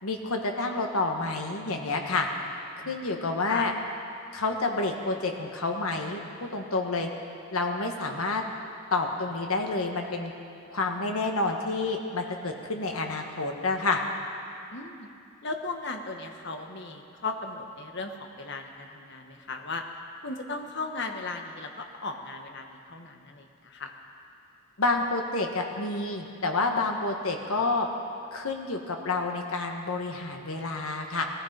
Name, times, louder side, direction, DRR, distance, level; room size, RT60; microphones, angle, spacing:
voice 1, 0.0-2.3 2.9-3.7 4.3-7.1 7.5-8.4 8.9-10.3 10.7-14.0 24.8-27.9 28.3-31.2, left 3 dB, 75° left, 3 dB, 1.5 m, -29 dB
voice 2, 14.7-15.1 15.4-19.8 20.2-23.9, left 3 dB, 50° left, 4 dB, 1.2 m, -36 dB
18.0 x 14.0 x 5.2 m, 2.5 s
head